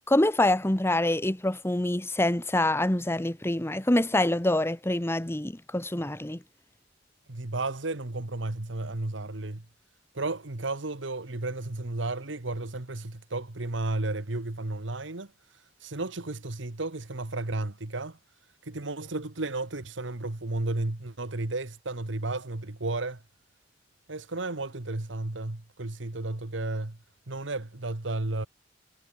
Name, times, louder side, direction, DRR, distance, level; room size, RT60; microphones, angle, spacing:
voice 1, 0.1-6.4, left 1 dB, 15° left, 1.2 m, -25 dB
voice 2, 7.3-9.6 10.1-15.3 15.8-18.2 18.6-23.2 24.1-27.0 27.3-28.5, right 2 dB, 80° right, 1.6 m, -33 dB
head